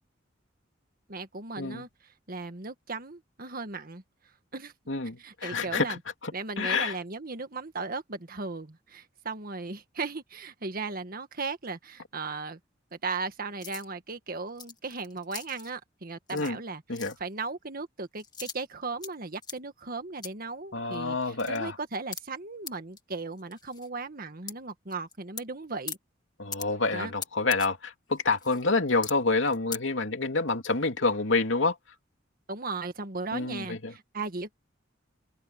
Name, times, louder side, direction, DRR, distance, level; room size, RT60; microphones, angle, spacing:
voice 1, 1.1-1.9 2.3-4.0 4.5-4.7 5.2-6.0 6.3-12.6 12.9-26.0 26.9-27.1 32.5-34.5, right 3 dB, 50° right, 1.7 m, -37 dB
voice 2, 4.9-6.3 6.6-6.9 16.3-16.6 16.9-17.1 20.7-21.7 26.4-31.7 33.3-33.9, left 3 dB, 80° left, 2.7 m, -28 dB
sound 1, 13.6-13.8 14.5-15.7 16.3-16.6 16.9-17.2 18.2-19.1 19.4-19.6 20.2-20.3 20.9-21.0 21.2-21.6 22.1-22.2 22.7-22.8 23.0-23.1 23.4-23.9 24.5-24.6 24.9-25.4 25.9-26.0 26.5-26.6 27.2-27.7 28.1-28.6 29.0-29.1 29.4-29.8, left 6 dB, 20° left, 2.0 m, -40 dB
open air
head